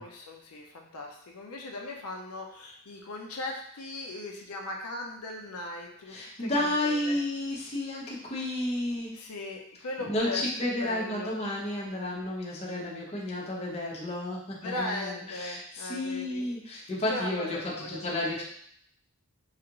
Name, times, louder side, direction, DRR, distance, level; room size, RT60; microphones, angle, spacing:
voice 1, 0.0-6.1 6.4-7.2 9.1-10.4 10.8-11.3 14.6-16.5 17.1-18.4, left 2 dB, 80° left, 1 dB, 0.5 m, -38 dB
voice 2, 6.1-9.2 10.0-18.4, left 1 dB, 30° left, -4 dB, 0.9 m, -32 dB
4.8 x 2.4 x 2.9 m, 0.68 s
head